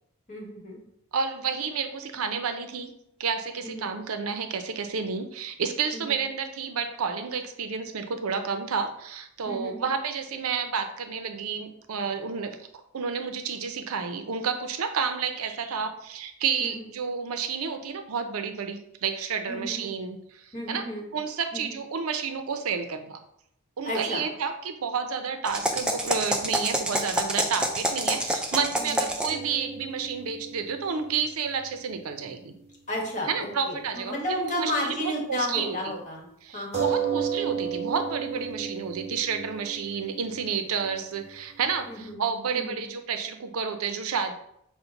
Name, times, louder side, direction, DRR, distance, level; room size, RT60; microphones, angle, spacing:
voice 1, 0.3-0.8 3.6-3.9 5.9-6.2 9.5-9.9 16.6-16.9 19.5-19.9 20.5-21.1 21.5-21.6 23.8-24.3 28.8-29.1 32.9-36.3 36.5-36.8 38.4-38.7 41.9-42.2 42.5-42.8, left 1 dB, 35° left, -2 dB, 1.2 m, -33 dB
voice 2, 1.1-2.9 3.2-12.6 12.9-20.9 21.1-23.2 23.8-32.6 33.3-34.1 34.4-35.9 36.4-44.3, right 6 dB, 85° right, 7 dB, 0.5 m, -30 dB
sound 1, 25.5-29.4, right 1 dB, 5° right, 0.3 m, -27 dB
sound 2, 29.3-33.1 33.4-33.5 36.7-42.0, right 7 dB, 30° right, 1.0 m, -34 dB
5.7 x 2.1 x 3.9 m, 0.75 s
head